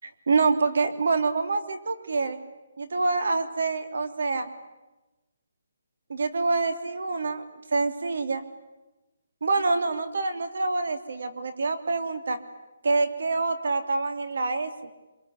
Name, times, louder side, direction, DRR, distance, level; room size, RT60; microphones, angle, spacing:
voice 1, 0.0-2.4 2.8-4.5 6.1-7.4 7.7-8.4 9.4-12.4 12.8-14.7, right 3 dB, 70° right, 8 dB, 3.1 m, -26 dB
26.0 x 23.5 x 9.9 m, 1.1 s
hypercardioid pair, 170°, 0 cm